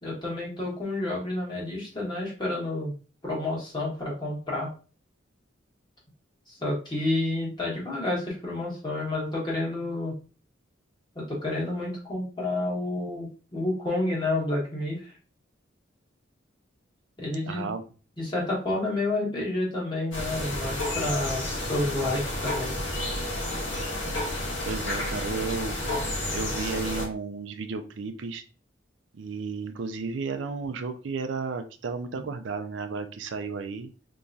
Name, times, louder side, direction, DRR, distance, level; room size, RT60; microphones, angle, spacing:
voice 1, 0.0-2.9 3.2-4.7 6.5-10.1 11.1-15.1 17.2-17.7 18.2-22.8, left 2 dB, 25° left, -5 dB, 1.5 m, -30 dB
voice 2, 17.4-17.8 24.6-28.4 29.1-33.9, right 4 dB, 70° right, 8 dB, 0.4 m, -33 dB
sound 1, 20.1-27.0, left 1 dB, 80° left, 1.4 m, -31 dB
3.6 x 2.9 x 2.6 m, 0.36 s
head